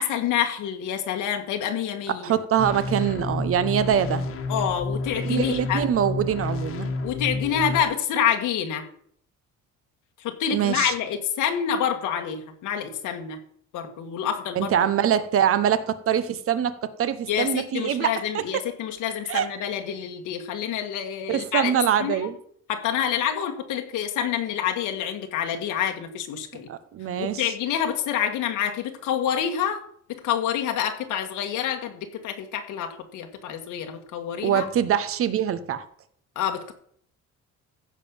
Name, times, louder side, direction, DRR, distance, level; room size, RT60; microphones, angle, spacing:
voice 1, 0.0-2.4 4.5-5.8 7.0-8.9 10.2-13.4 13.7-14.7 17.3-21.7 22.0-22.3 22.7-26.7 27.2-29.8 30.1-34.7 36.4-36.7, left 9 dB, 85° left, 4 dB, 1.8 m, -27 dB
voice 2, 2.2-4.3 5.2-6.9 10.5-10.9 14.6-18.1 19.3-19.5 21.3-22.4 26.7-27.4 34.4-35.8, right 9 dB, 45° right, 13 dB, 1.0 m, -24 dB
sound 1, 2.6-7.8, left 3 dB, 45° left, 1.5 m, -30 dB
15.0 x 5.5 x 7.1 m, 0.63 s
cardioid pair, 170°, 30 cm